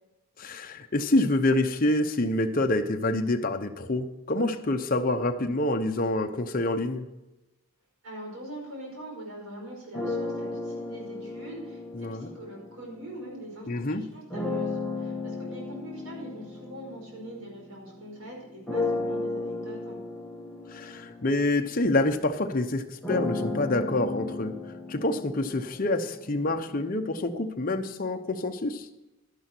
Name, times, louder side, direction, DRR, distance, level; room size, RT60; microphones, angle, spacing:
voice 1, 0.4-7.1 11.9-12.3 13.7-14.1 20.7-24.6 24.9-28.9, left 2 dB, 40° left, 5 dB, 0.8 m, -27 dB
voice 2, 8.0-20.0, right 1 dB, 80° right, -1 dB, 5.1 m, -43 dB
sound 1, 9.9-13.5 14.3-18.1 18.7-26.6, left 3 dB, 5° left, 1.2 m, -35 dB
11.5 x 10.5 x 4.5 m, 1.0 s
head